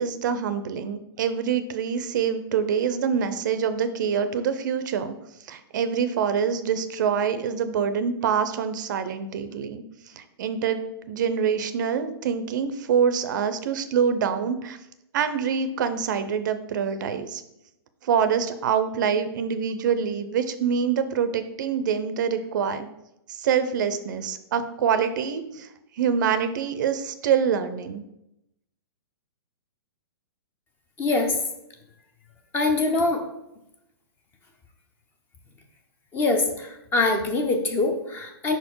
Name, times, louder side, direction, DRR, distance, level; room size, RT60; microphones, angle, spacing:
voice 1, 0.0-5.1 5.5-9.8 10.2-14.8 15.1-17.4 18.0-22.9 23.3-25.7 26.0-28.0, right 7 dB, 50° right, 11 dB, 0.5 m, -25 dB
voice 2, 31.0-31.4 32.5-33.2 36.1-38.6, left 3 dB, 15° left, 5 dB, 0.6 m, -23 dB
5.1 x 4.3 x 4.5 m, 0.85 s
hypercardioid pair, 155°, 13 cm